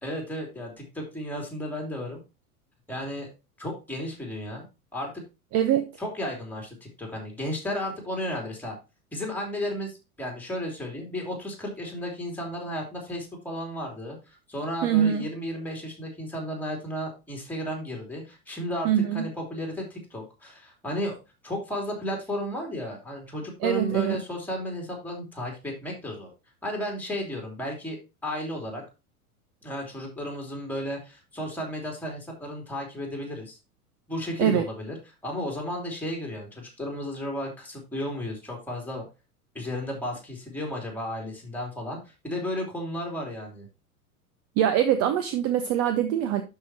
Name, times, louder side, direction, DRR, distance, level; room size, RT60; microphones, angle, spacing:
voice 1, 0.0-2.2 2.9-3.3 3.6-4.7 4.9-5.2 6.0-8.8 9.1-21.2 21.4-26.3 26.6-28.8 29.6-33.6 34.1-34.9 35.2-39.0 39.5-42.0 42.2-43.7, equal, 5° left, 3.0 m, -33 dB
voice 2, 5.5-5.9 14.8-15.3 18.8-19.3 23.6-24.2 34.4-34.6 44.6-46.4, right 10 dB, 30° right, 0.8 m, -23 dB
12.0 x 4.8 x 2.8 m
figure-of-eight pair, 85°, 45 cm